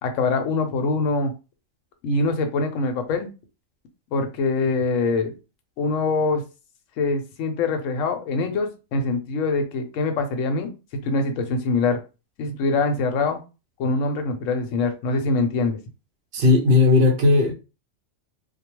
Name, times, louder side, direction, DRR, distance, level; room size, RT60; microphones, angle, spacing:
voice 1, 0.0-1.3 2.0-3.3 4.1-5.3 5.8-6.4 7.0-10.7 11.0-12.0 12.4-13.4 13.8-15.8, left 3 dB, 75° left, 0.9 m, -24 dB
voice 2, 16.3-17.5, left 3 dB, 55° right, 0.8 m, -16 dB
2.3 x 2.2 x 2.9 m
omnidirectional pair, 1.4 m